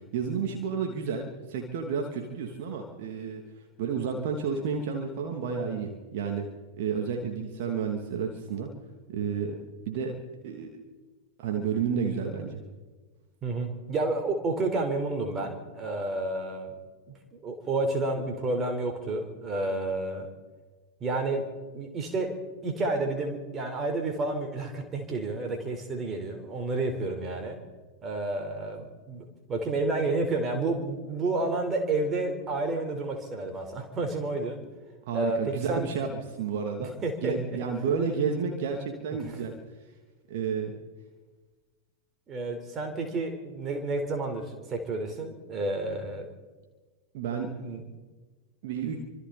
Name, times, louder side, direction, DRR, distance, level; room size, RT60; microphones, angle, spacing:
voice 1, 0.1-3.4 3.8-6.4 6.8-8.7 9.1-9.5 9.9-10.1 10.4-10.7 11.4-12.6 35.1-36.1 36.4-36.9 37.2-39.5 40.3-40.7 47.1-47.5 48.6-49.0, right 6 dB, 50° right, 2 dB, 2.9 m, -31 dB
voice 2, 13.4-16.7 17.1-20.3 21.0-21.5 21.7-22.4 22.6-27.6 28.0-34.6 35.1-35.9 36.8-37.6 39.3-39.4 42.3-46.3 47.6-47.8, right 2 dB, 25° right, 4 dB, 4.4 m, -30 dB
27.0 x 26.0 x 4.3 m, 1.3 s
figure-of-eight pair, 90°, 0 cm